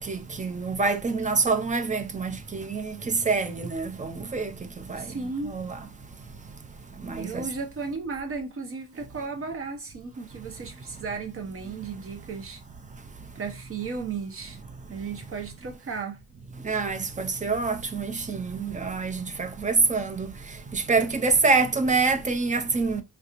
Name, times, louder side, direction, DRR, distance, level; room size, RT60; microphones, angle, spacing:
voice 1, 0.1-2.3 2.7-2.9 3.3-4.5 4.9-5.0 5.5-5.7 7.1-7.4 16.7-20.3 20.7-23.0, right 4 dB, 25° right, 0.3 m, -26 dB
voice 2, 5.0-5.6 7.2-12.6 13.3-14.6 14.9-16.2, right 4 dB, 40° right, 0.7 m, -35 dB
3.3 x 2.9 x 2.4 m
wide cardioid pair, 160°, 35 cm